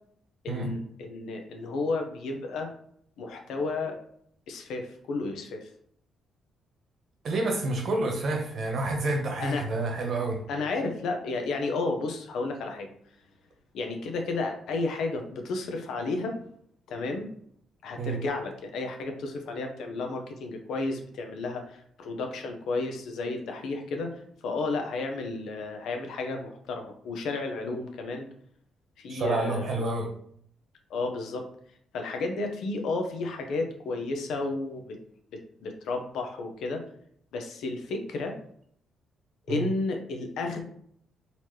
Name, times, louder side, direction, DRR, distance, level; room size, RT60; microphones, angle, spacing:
voice 1, 0.4-2.7 3.2-4.0 4.5-5.7 9.4-9.6 10.5-12.9 13.7-16.4 16.9-17.3 17.8-28.3 29.0-29.8 30.9-31.5 31.9-35.0 35.3-36.8 37.3-38.4 39.5-40.6, left 3 dB, 80° left, 4 dB, 0.8 m, -32 dB
voice 2, 7.2-10.4 18.0-18.2 29.1-30.1 39.5-39.7, right 2 dB, 55° right, 2 dB, 1.1 m, -29 dB
4.1 x 2.9 x 3.2 m, 0.64 s
cardioid pair, 90°, 0 cm